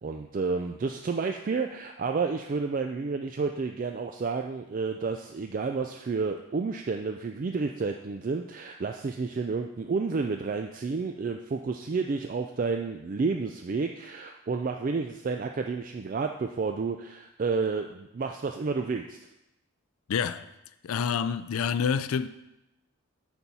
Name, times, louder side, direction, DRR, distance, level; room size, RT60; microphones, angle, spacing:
voice 1, 0.0-19.2, right 4 dB, 40° right, 0.3 m, -30 dB
voice 2, 20.1-20.5 20.8-22.3, left 7 dB, 75° left, 0.4 m, -27 dB
8.3 x 4.4 x 5.5 m
head